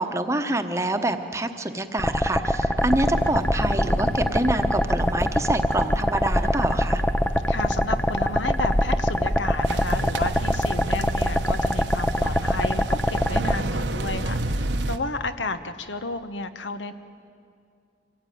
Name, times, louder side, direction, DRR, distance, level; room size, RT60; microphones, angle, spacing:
voice 1, 0.0-7.0, right 1 dB, 15° right, 7 dB, 1.0 m, -26 dB
sound 1, 2.0-13.6, equal, 5° left, 0.5 m, -24 dB
sound 2, 2.8-12.3, equal, 40° left, 2.2 m, -33 dB
voice 2, 7.5-16.9, left 3 dB, 85° left, 10 dB, 1.2 m, -32 dB
sound 3, 9.6-15.0, right 2 dB, 75° right, 1.1 m, -30 dB
25.0 x 17.5 x 9.3 m, 2.4 s
head